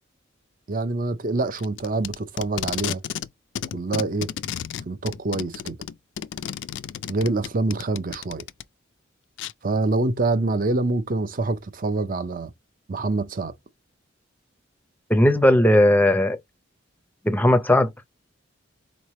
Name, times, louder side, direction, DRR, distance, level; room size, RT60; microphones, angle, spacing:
voice 1, 0.7-3.0 3.7-4.3 4.9-5.8 7.1-8.4 9.6-12.5 12.9-13.5, right 3 dB, 45° right, 0.5 m, -25 dB
Packing tape duct tape, 1.6-3.3 3.6-8.6 9.4-9.5, left 9 dB, 65° left, 0.3 m, -32 dB
voice 2, 15.1-16.4 17.2-17.9, left 1 dB, 10° left, 0.5 m, -17 dB
3.9 x 3.2 x 4.2 m
head